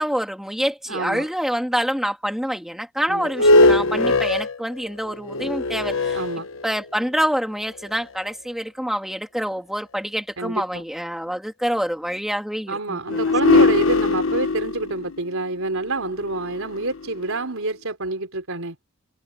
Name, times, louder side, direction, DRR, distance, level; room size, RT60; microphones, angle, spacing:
voice 1, 0.0-6.2 6.6-13.6, equal, ahead, 3.3 m, -26 dB
voice 2, 0.9-1.3 3.1-3.5 6.1-6.5 10.4-10.8 12.7-18.8, right 2 dB, 70° right, 4.1 m, -27 dB
sound 1, 3.2-7.0 7.8-7.9 13.1-17.3, left 2 dB, 65° left, 1.1 m, -21 dB
head